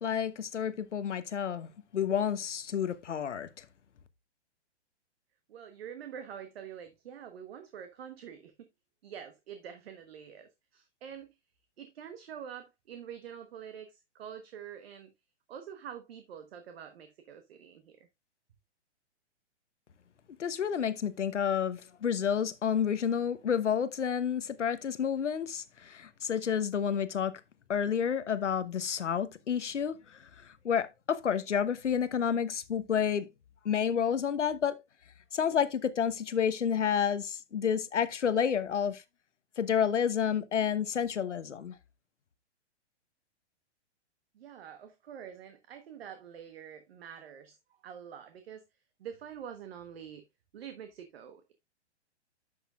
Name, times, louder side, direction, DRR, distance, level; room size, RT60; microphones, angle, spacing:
voice 1, 0.0-3.7 20.4-27.4 27.7-33.3 33.6-34.8 35.3-39.0 39.6-41.8, left 8 dB, 90° left, 1.0 m, -30 dB
voice 2, 5.5-8.7 9.0-11.3 11.8-15.1 15.5-18.1 44.3-48.6 49.0-50.2 50.5-51.5, right 8 dB, 60° right, 1.3 m, -46 dB
10.5 x 6.7 x 2.4 m
hypercardioid pair, 135°, 35 cm